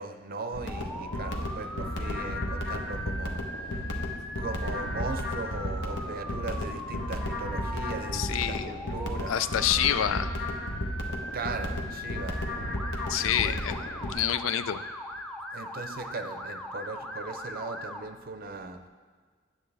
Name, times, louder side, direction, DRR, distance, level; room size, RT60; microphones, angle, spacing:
voice 1, 0.0-4.0 4.4-9.4 11.3-12.4 13.4-13.6 15.5-18.8, right 3 dB, 50° right, 7 dB, 0.6 m, -38 dB
sound 1, 0.5-14.1, left 1 dB, 65° left, 1.0 m, -34 dB
Motor vehicle (road) / Siren, 0.7-18.0, left 1 dB, 5° left, 0.4 m, -40 dB
voice 2, 8.1-8.7 9.3-10.3 13.1-13.8 14.1-14.8, left 10 dB, 80° left, 13 dB, 0.4 m, -27 dB
9.5 x 7.4 x 3.4 m, 1.5 s
head